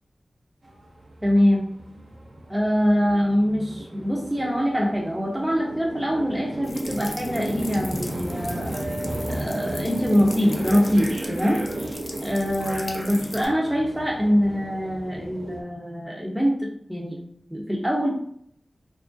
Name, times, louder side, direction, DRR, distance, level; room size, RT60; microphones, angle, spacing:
sound 1, 0.6-15.6, right 1 dB, 75° right, 0.6 m, -34 dB
voice 1, 1.2-1.7 2.5-8.8 9.3-11.6 12.2-17.2 17.5-18.2, equal, 5° right, -3 dB, 0.5 m, -23 dB
sound 2, 6.6-13.5, left 2 dB, 50° left, 0.4 m, -40 dB
2.9 x 2.3 x 2.5 m, 0.68 s
wide cardioid pair, 75°, 0 cm